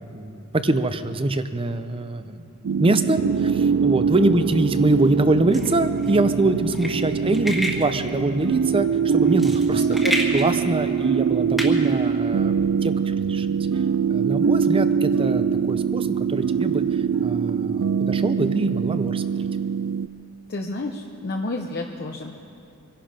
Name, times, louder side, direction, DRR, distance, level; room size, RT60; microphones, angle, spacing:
voice 1, 0.0-10.0 10.3-13.5 14.1-19.2, right 2 dB, 25° right, 10 dB, 0.6 m, -24 dB
sound 1, 2.6-20.1, right 6 dB, 70° right, 0.4 m, -23 dB
sound 2, 5.5-12.7, equal, ahead, 1.5 m, -31 dB
voice 2, 20.5-22.4, left 2 dB, 50° left, 2 dB, 0.8 m, -30 dB
24.5 x 11.5 x 5.1 m, 2.6 s
head